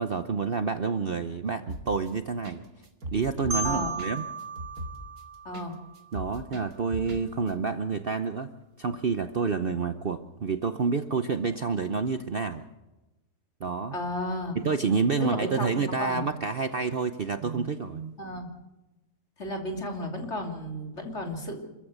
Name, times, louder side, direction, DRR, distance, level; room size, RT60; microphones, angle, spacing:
voice 1, 0.0-2.6 3.1-4.2 6.1-8.5 8.8-12.6 13.6-13.9 14.6-18.2, right 5 dB, 45° right, 9 dB, 0.9 m, -28 dB
sound 1, 1.7-2.1 2.4-2.6 2.8-5.7 6.0-7.2 7.5-7.6, right 2 dB, 65° right, 2.6 m, -38 dB
Marimba xylophone, 3.5-6.3, right 3 dB, 85° right, 2.3 m, -35 dB
voice 2, 3.6-4.0 5.4-5.7 13.9-14.6 15.2-16.3 18.2-18.5 19.4-21.7, left 1 dB, 45° left, 3 dB, 3.3 m, -33 dB
27.0 x 14.5 x 8.0 m, 1.0 s
omnidirectional pair, 1.6 m